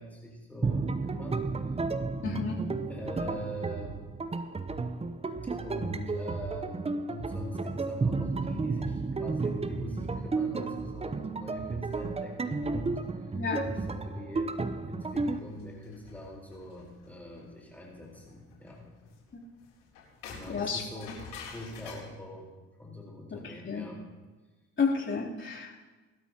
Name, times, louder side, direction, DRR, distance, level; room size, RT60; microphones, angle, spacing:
voice 1, 0.0-1.5 2.9-4.0 5.6-14.6 14.9-18.9 20.3-21.2 21.5-22.5 22.8-24.0, left 1 dB, 5° left, -3 dB, 4.2 m, -43 dB
sound 1, 0.6-15.4, right 3 dB, 15° right, 0.8 m, -32 dB
voice 2, 2.2-2.6 13.3-13.6 19.3-19.4 20.5-20.8 23.3-23.4 23.6-23.9 24.8-25.8, left 5 dB, 35° left, -3 dB, 3.4 m, -31 dB
sound 2, 15.2-22.0, left 5 dB, 75° left, 4.0 m, -49 dB
19.5 x 12.5 x 2.9 m, 1.2 s
hypercardioid pair, 55°, 35 cm